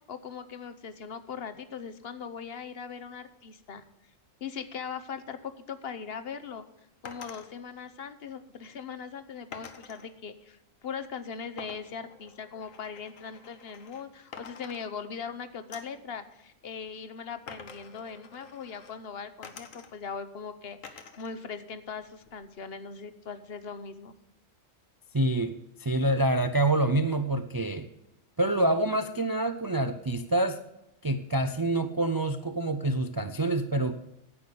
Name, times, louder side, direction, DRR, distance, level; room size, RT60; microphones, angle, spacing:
voice 1, 0.1-3.8 4.4-6.7 7.0-24.1, left 6 dB, 55° left, 10 dB, 1.0 m, -40 dB
sound 1, 7.1-7.5 9.5-10.1 11.6-14.1 14.3-15.3 15.7-16.0 17.5-19.0 19.4-20.2 20.8-21.4 21.7-22.5, left 6 dB, 90° left, 1.5 m, -48 dB
voice 2, 25.1-27.9 28.4-30.6 31.0-33.9, right 1 dB, 35° right, 9 dB, 0.3 m, -27 dB
10.0 x 8.3 x 6.8 m, 0.87 s
omnidirectional pair, 1.3 m